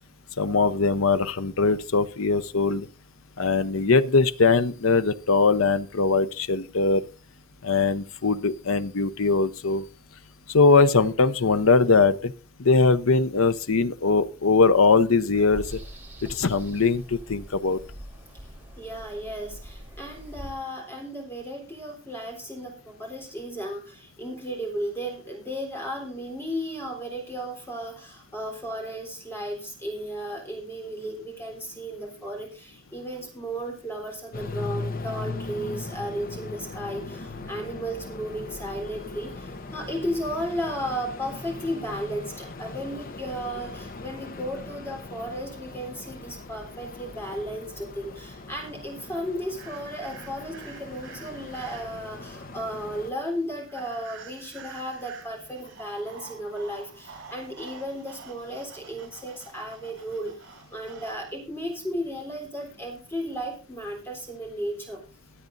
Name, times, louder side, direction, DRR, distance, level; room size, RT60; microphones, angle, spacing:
voice 1, 0.4-2.9 3.4-7.0 7.6-9.8 10.5-12.3 12.6-15.8 16.2-17.8, left 4 dB, 75° left, 13 dB, 0.8 m, -21 dB
sound 1, 15.3-20.5, equal, 10° right, 3.5 m, -43 dB
voice 2, 18.8-65.0, equal, 10° left, 1 dB, 3.8 m, -34 dB
sound 2, 34.3-53.1, left 3 dB, 45° left, 1.0 m, -39 dB
sound 3, 49.6-52.1 53.7-61.1, right 6 dB, 60° right, 7.0 m, -48 dB
24.5 x 8.6 x 2.6 m, 0.33 s
head